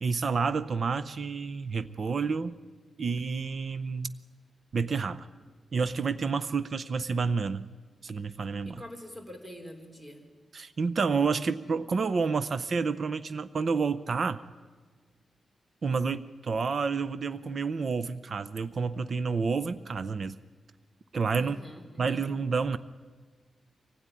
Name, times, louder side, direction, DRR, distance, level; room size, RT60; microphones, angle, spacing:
voice 1, 0.0-2.5 3.0-4.1 4.7-5.3 5.7-7.7 8.0-8.8 10.5-14.4 15.8-20.4 21.1-21.6 22.0-22.8, right 5 dB, 50° right, 14 dB, 0.7 m, -29 dB
voice 2, 8.7-10.2 21.4-22.4, equal, 15° right, 4 dB, 3.1 m, -46 dB
24.5 x 16.5 x 9.9 m, 1.5 s
wide cardioid pair, 120°, 0 cm